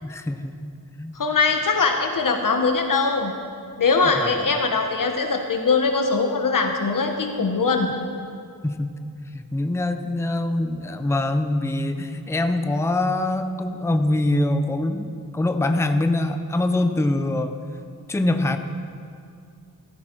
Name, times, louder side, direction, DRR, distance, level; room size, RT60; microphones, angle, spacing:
voice 1, 0.0-1.2 4.0-4.4 8.6-8.9 9.3-17.6 18.1-18.6, left 2 dB, 10° left, 8 dB, 0.6 m, -24 dB
voice 2, 1.1-3.3 3.8-7.9, left 4 dB, 60° left, 4 dB, 1.2 m, -21 dB
16.5 x 14.5 x 4.6 m, 2.4 s
wide cardioid pair, 155°, 36 cm